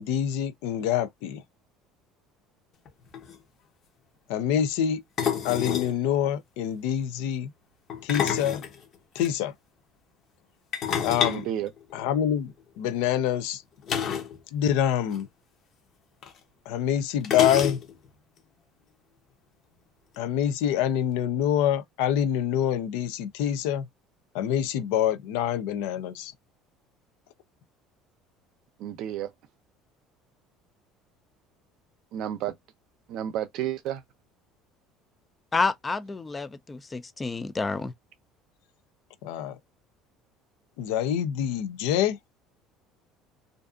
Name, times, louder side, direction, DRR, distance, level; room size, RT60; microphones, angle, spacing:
voice 1, 0.0-1.4 4.3-5.0 5.4-7.5 8.0-8.6 9.2-9.5 11.0-11.4 11.9-13.6 14.5-15.3 16.7-17.8 20.2-23.8 24.3-26.3 39.2-39.6 40.8-42.2, left 10 dB, 85° left, 0.5 m, -26 dB
sound 1, 2.9-3.0 3.1-3.4 5.2-6.0 7.9-9.3 10.7-12.4 13.9-14.4 14.6-14.7 15.1-15.2 16.2-16.3 17.2-18.1, left 8 dB, 40° left, 0.7 m, -29 dB
voice 2, 11.3-11.7 28.8-29.3 32.1-32.5 33.1-34.0, right 11 dB, 60° right, 0.5 m, -31 dB
voice 3, 35.5-37.9, left 3 dB, 15° left, 0.3 m, -29 dB
2.5 x 2.4 x 2.4 m
cardioid pair, 150°, 0 cm